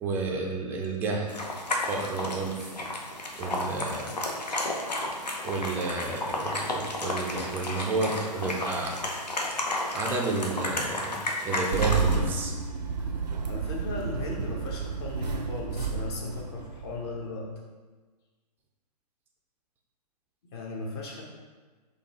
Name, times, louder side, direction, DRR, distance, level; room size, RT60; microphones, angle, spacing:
voice 1, 0.0-1.3 1.7-2.6 3.4-4.1 5.4-9.0 9.5-9.6 9.9-12.5, right 3 dB, 10° right, -1 dB, 0.4 m, -31 dB
sound 1, 1.3-12.2, left 2 dB, 80° left, 0.8 m, -32 dB
Engine starting, 11.7-17.2, right 4 dB, 85° right, 0.5 m, -30 dB
voice 2, 13.0-17.5 20.5-21.2, left 2 dB, 40° left, -1 dB, 1.0 m, -37 dB
4.2 x 2.8 x 4.1 m, 1.3 s
figure-of-eight pair, 120°, 21 cm